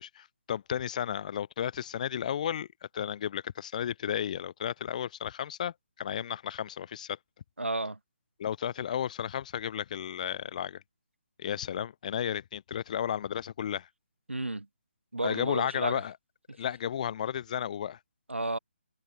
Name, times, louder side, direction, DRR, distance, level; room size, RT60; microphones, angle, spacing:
voice 1, 0.0-2.7 2.9-7.2 8.4-10.8 11.4-13.9 15.2-16.2 16.6-18.0, left 9 dB, 40° left, 1.5 m, -33 dB
voice 2, 7.6-8.0 14.3-14.7 15.1-16.0 18.3-18.6, right 2 dB, 90° right, 0.7 m, -32 dB
figure-of-eight pair, 145°, 6 cm